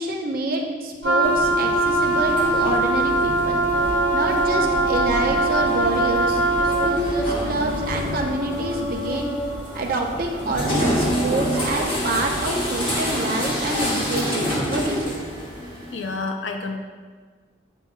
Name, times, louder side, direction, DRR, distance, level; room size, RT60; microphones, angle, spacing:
voice 1, 0.0-3.6 4.1-9.3 9.7-15.2, right 2 dB, 45° right, 0 dB, 0.8 m, -27 dB
Wind instrument woodwind instrument, 1.0-7.0, right 2 dB, 70° right, 1.1 m, -21 dB
sound 1, 1.2-16.2, equal, 25° left, 1.3 m, -28 dB
sound 2, 3.7-14.2, left 1 dB, 5° left, 0.8 m, -33 dB
voice 2, 15.9-16.8, left 3 dB, 65° left, 4 dB, 0.5 m, -29 dB
8.9 x 5.7 x 2.3 m, 1.5 s
head